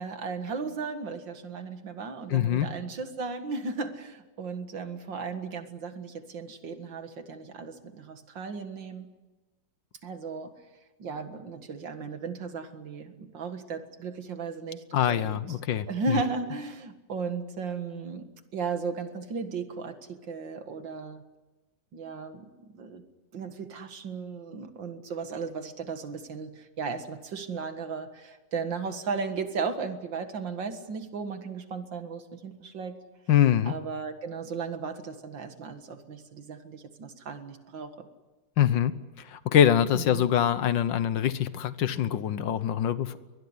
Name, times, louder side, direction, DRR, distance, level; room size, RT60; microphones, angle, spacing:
voice 1, 0.0-9.1 10.0-10.5 11.0-15.4 15.9-21.2 21.9-23.0 23.3-33.0 33.7-38.1 39.9-40.3, right 4 dB, 70° right, 8 dB, 2.5 m, -35 dB
voice 2, 2.3-2.7 14.9-15.9 16.1-16.2 33.3-33.7 38.6-38.9 39.3-43.2, left 10 dB, 75° left, 14 dB, 1.7 m, -24 dB
22.5 x 20.5 x 9.8 m, 1.1 s
omnidirectional pair, 2.1 m